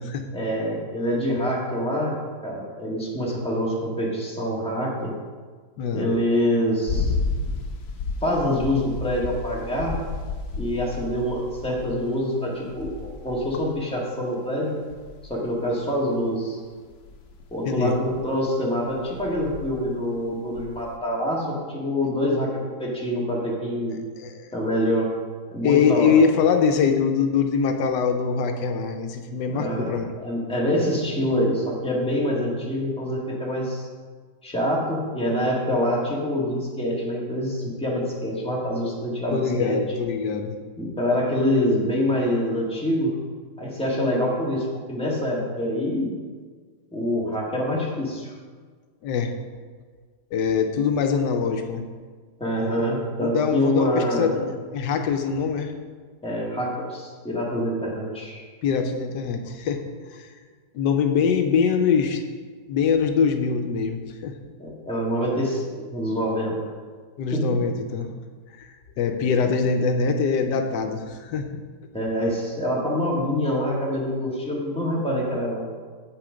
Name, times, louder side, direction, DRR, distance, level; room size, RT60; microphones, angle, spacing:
voice 1, 0.3-2.2 2.4-5.1 5.9-7.1 8.2-10.0 10.6-14.8 15.3-16.6 17.5-24.0 24.5-25.1 25.5-26.2 29.5-33.9 34.4-39.8 40.8-43.2 43.6-46.1 46.9-48.3 52.4-54.3 56.2-58.5 64.6-66.6 67.3-67.6 71.9-75.6, equal, 5° left, -4 dB, 1.8 m, -25 dB
voice 2, 5.8-6.1 17.6-18.0 24.2-24.5 25.6-30.0 39.3-40.5 49.0-49.3 50.3-51.8 53.2-55.7 58.6-60.4 60.7-62.2 62.7-64.4 67.2-68.1 68.6-71.5, left 6 dB, 85° left, 5 dB, 1.4 m, -23 dB
sound 1, 6.9-12.1 12.6-13.7 14.9-16.0 16.9-18.2 18.9-19.8 20.2-21.0, left 3 dB, 70° left, 1.4 m, -32 dB
8.9 x 6.9 x 5.1 m, 1.6 s
omnidirectional pair, 1.8 m